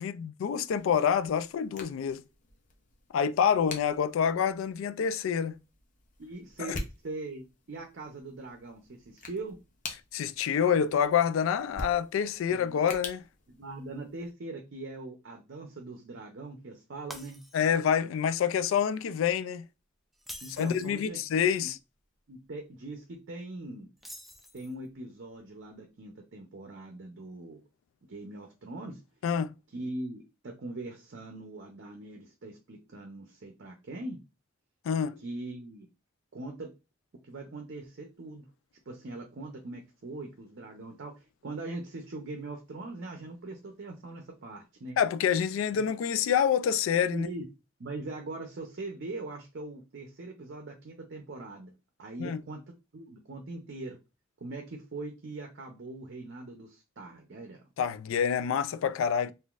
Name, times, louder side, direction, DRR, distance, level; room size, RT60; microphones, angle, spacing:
voice 1, 0.0-2.2 3.1-5.6 6.6-6.8 10.1-13.2 17.5-19.7 20.6-21.8 29.2-29.5 34.9-35.2 45.0-47.3 52.2-52.4 57.8-59.3, left 7 dB, 75° left, 0.3 m, -27 dB
sound 1, 0.6-14.3, left 2 dB, 40° left, 0.6 m, -46 dB
voice 2, 6.2-9.6 12.5-12.8 13.5-17.4 20.4-21.2 22.3-23.9 24.5-27.6 28.1-29.0 29.7-34.2 35.2-35.9 36.3-36.7 37.2-38.4 38.9-41.1 41.4-45.0 47.1-47.5 47.8-51.7 52.0-52.6 52.9-54.0 54.4-57.6, right 2 dB, 60° right, 0.6 m, -41 dB
Shatter, 17.1-17.9 18.3-18.5 20.1-21.0 24.0-24.9, equal, ahead, 0.4 m, -46 dB
3.8 x 2.5 x 2.4 m
head